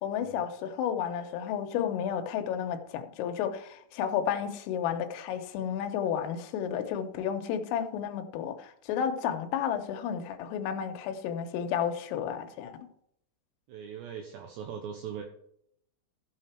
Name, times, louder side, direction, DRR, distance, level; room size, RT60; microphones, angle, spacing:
voice 1, 0.0-12.8, left 8 dB, 85° left, 3.6 m, -32 dB
voice 2, 13.7-15.2, right 8 dB, 75° right, 2.7 m, -40 dB
14.5 x 6.7 x 4.4 m
omnidirectional pair, 5.8 m